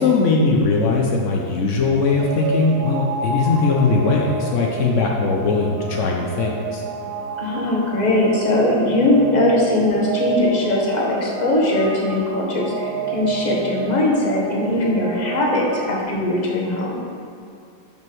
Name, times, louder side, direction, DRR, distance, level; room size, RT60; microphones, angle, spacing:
voice 1, 0.0-6.8, left 3 dB, 90° left, -1 dB, 0.6 m, -19 dB
sound 1, 1.9-16.0, right 3 dB, 75° right, 1.3 m, -29 dB
voice 2, 7.4-17.0, left 1 dB, 30° left, -3 dB, 0.9 m, -20 dB
5.4 x 5.3 x 6.1 m, 2.4 s
omnidirectional pair, 2.2 m